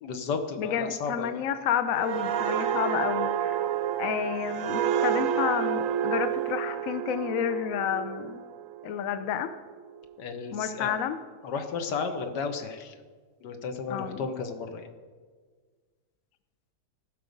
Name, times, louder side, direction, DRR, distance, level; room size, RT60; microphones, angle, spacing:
voice 1, 0.0-1.4 10.2-10.9 11.4-12.9 13.4-14.9, left 5 dB, 80° left, 7 dB, 1.6 m, -33 dB
voice 2, 0.6-3.6 4.0-8.4 8.8-9.5 10.5-11.2 13.9-14.2, left 9 dB, 65° left, 10 dB, 0.9 m, -30 dB
sound 1, 1.9-9.4 9.8-10.0, right 9 dB, 70° right, 0.8 m, -29 dB
16.0 x 6.2 x 5.2 m, 1.5 s
omnidirectional pair, 1.8 m